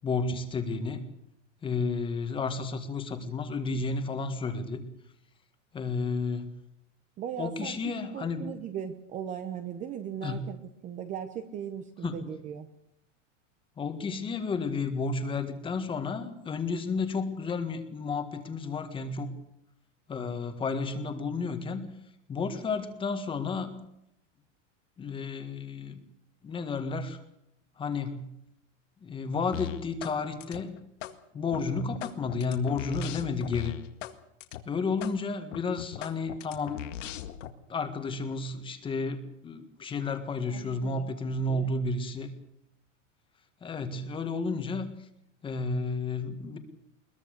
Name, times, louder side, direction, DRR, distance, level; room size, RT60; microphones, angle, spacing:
voice 1, 0.0-1.0 1.6-4.9 5.7-6.6 7.4-8.5 10.2-10.5 12.0-12.2 13.8-19.3 20.1-21.9 22.3-23.7 25.0-26.0 26.4-27.2 27.8-28.3 29.0-30.7 31.3-33.8 34.6-36.8 37.7-42.3 43.6-44.9 45.4-46.6, left 4 dB, 15° left, 8 dB, 1.7 m, -32 dB
voice 2, 7.2-12.7 40.5-41.1 41.5-41.7, right 9 dB, 20° right, 9 dB, 0.9 m, -38 dB
sound 1, 29.5-30.2 30.4-31.1 31.5-34.1 34.4-34.6 35.0-35.1 35.5-37.5, left 12 dB, 75° left, 1.9 m, -39 dB
21.5 x 21.0 x 6.6 m, 0.78 s
supercardioid pair, 165°, 37 cm